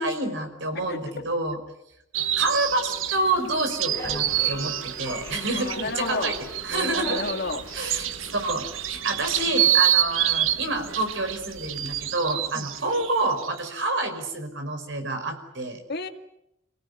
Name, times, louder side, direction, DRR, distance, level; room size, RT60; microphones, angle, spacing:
voice 1, 0.0-1.6 2.4-6.4 6.6-7.2 7.7-15.8, right 2 dB, 65° right, 6 dB, 5.2 m, -28 dB
voice 2, 0.9-1.2 5.5-6.3 6.7-7.6 12.5-12.7 15.9-16.1, left 3 dB, 55° left, 6 dB, 2.1 m, -32 dB
sound 1, 2.1-13.7, right 11 dB, 85° right, 1.2 m, -27 dB
sound 2, 3.8-12.1, left 1 dB, 10° left, 4.3 m, -42 dB
27.0 x 17.5 x 9.8 m, 0.85 s
head